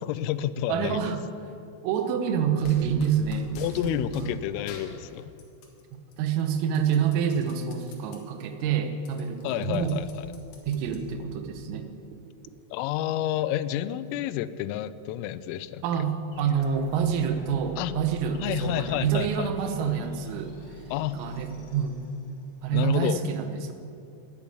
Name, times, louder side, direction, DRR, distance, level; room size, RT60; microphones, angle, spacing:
voice 1, 0.0-1.1 3.6-5.3 9.4-10.3 12.7-16.0 17.8-17.9 18.4-19.8 20.9-21.2 22.7-23.2, left 12 dB, 90° left, 15 dB, 3.2 m, -30 dB
voice 2, 0.7-1.2 1.8-3.6 3.8-4.3 6.2-10.0 10.6-11.9 15.8-20.5 21.1-22.0 22.6-23.7, right 7 dB, 90° right, 7 dB, 3.7 m, -27 dB
sound 1, 2.6-4.3 4.7-5.8 6.1-8.2 8.6-8.7 8.9-11.4, left 3 dB, 65° left, 3.6 m, -46 dB
sound 2, 16.3-22.8, equal, 45° left, 1.9 m, -47 dB
10.5 x 8.9 x 9.8 m, 2.6 s
omnidirectional pair, 5.8 m